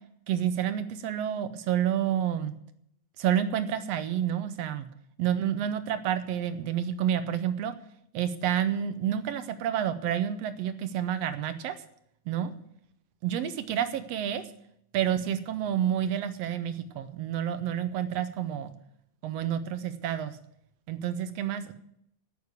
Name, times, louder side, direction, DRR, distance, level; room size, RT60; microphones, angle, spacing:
voice 1, 0.3-2.5 3.2-4.9 5.2-7.7 8.1-11.7 12.3-12.5 13.2-14.4 14.9-18.7 19.2-20.4 20.9-21.7, right 10 dB, 70° right, 10 dB, 1.6 m, -29 dB
9.3 x 8.4 x 9.6 m, 0.73 s
omnidirectional pair, 3.5 m